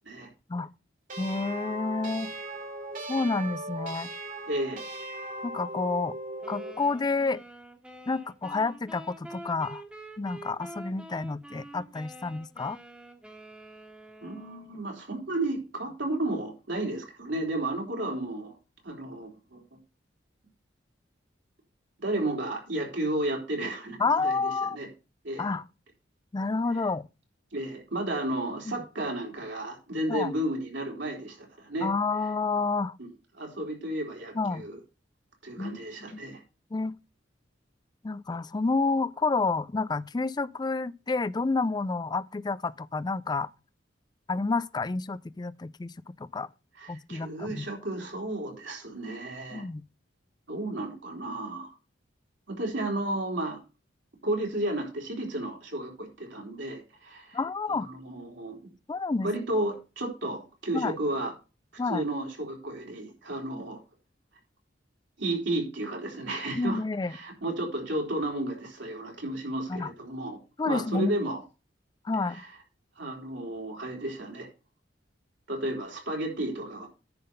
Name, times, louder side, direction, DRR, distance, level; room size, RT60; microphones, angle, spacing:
sound 1, 1.1-6.8, right 1 dB, 50° right, 2.2 m, -38 dB
voice 1, 1.2-2.3 3.1-4.1 5.4-6.2 6.5-7.4 8.1-9.8 10.2-12.8 24.0-24.8 25.4-25.6 26.3-27.1 28.7-28.8 30.1-30.3 31.8-32.9 34.3-34.6 35.6-35.8 36.1-36.2 36.7-37.0 38.0-43.5 44.3-46.5 46.9-47.7 49.5-49.9 57.3-57.9 58.9-59.3 60.7-61.0 61.8-62.0 63.5-63.6 66.5-67.2 69.7-69.9 70.6-71.2 72.0-72.4, left 3 dB, 25° left, 0.4 m, -29 dB
voice 2, 4.5-4.8 14.2-18.5 18.8-19.6 22.0-24.0 24.2-24.9 25.2-25.5 27.5-31.9 33.0-33.1 33.4-34.8 35.4-36.4 46.8-49.7 50.5-51.7 52.5-53.6 54.2-57.4 57.7-58.6 59.2-61.3 61.9-63.8 65.2-66.8 67.1-70.4 70.6-71.4 72.3-72.5 73.0-74.5 75.5-76.9, right 1 dB, 70° right, 3.5 m, -33 dB
sound 2, 6.4-14.8, right 1 dB, 5° right, 1.5 m, -47 dB
10.5 x 4.0 x 6.8 m
head